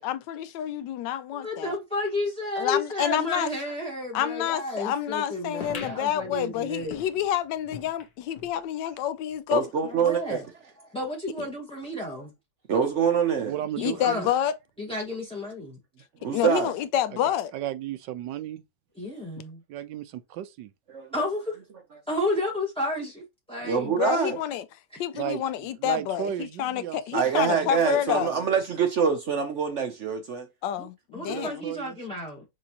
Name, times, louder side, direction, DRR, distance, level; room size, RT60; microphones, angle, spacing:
voice 1, 0.0-1.8 2.6-3.5 4.1-9.6 13.8-14.5 16.3-17.5 23.8-24.6 25.0-28.3 30.6-31.6, left 10 dB, 85° left, 1.3 m, -28 dB
voice 2, 1.3-7.0 9.9-10.4 10.9-12.3 13.8-14.3 14.8-15.8 19.0-19.6 21.1-21.6 22.1-23.9 30.7-30.8 31.1-32.4, left 1 dB, 5° left, 0.7 m, -32 dB
sound 1, 5.6-8.6 9.0-9.1 9.3-9.4 10.2-10.3, left 7 dB, 65° left, 1.5 m, -43 dB
voice 3, 9.5-10.6 12.7-13.6 16.2-16.7 20.9-21.1 21.9-22.0 23.6-24.4 27.1-30.5, right 6 dB, 60° right, 0.8 m, -25 dB
voice 4, 13.4-14.3 17.5-18.6 19.7-20.7 25.1-28.5 31.2-32.0, right 11 dB, 85° right, 1.3 m, -35 dB
6.1 x 2.8 x 2.9 m
omnidirectional pair, 1.9 m